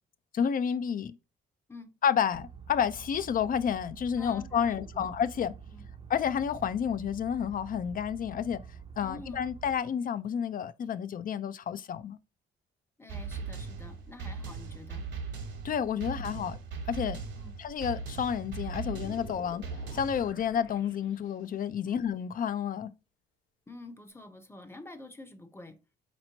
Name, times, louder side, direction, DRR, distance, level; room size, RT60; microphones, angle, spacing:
voice 1, 0.3-1.2 2.0-5.5 6.1-8.6 9.0-12.2 15.6-16.6 16.9-17.2 17.6-19.6 19.9-22.9, left 8 dB, 45° left, 0.4 m, -30 dB
sound 1, 2.3-9.8, right 6 dB, 25° right, 0.6 m, -47 dB
voice 2, 4.2-5.1 5.7-5.9 9.0-9.4 13.0-15.1 16.0-16.3 17.3-17.6 21.8-22.0 23.7-25.8, left 2 dB, 10° left, 0.7 m, -48 dB
sound 2, 13.1-20.3, right 5 dB, 65° right, 1.1 m, -39 dB
sound 3, 17.7-21.7, left 5 dB, 80° left, 1.0 m, -50 dB
4.1 x 3.0 x 2.8 m
cardioid pair, 90°, 20 cm